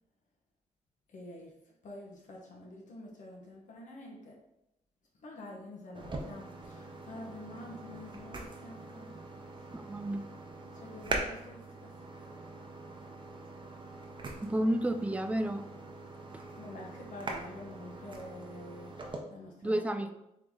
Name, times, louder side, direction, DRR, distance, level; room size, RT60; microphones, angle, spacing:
voice 1, 1.1-1.5 1.8-4.4 5.2-9.2 9.5-9.6 10.7-11.9 16.6-18.9 19.3-20.1, left 1 dB, 75° left, -2 dB, 1.0 m, -47 dB
sound 1, 5.9-19.2, right 3 dB, 40° right, 0.7 m, -43 dB
voice 2, 9.7-10.3 14.4-15.6 16.3-16.4 19.6-20.1, right 1 dB, 10° right, 8 dB, 0.3 m, -31 dB
3.9 x 3.1 x 3.6 m, 0.85 s
cardioid pair, 100°, 13 cm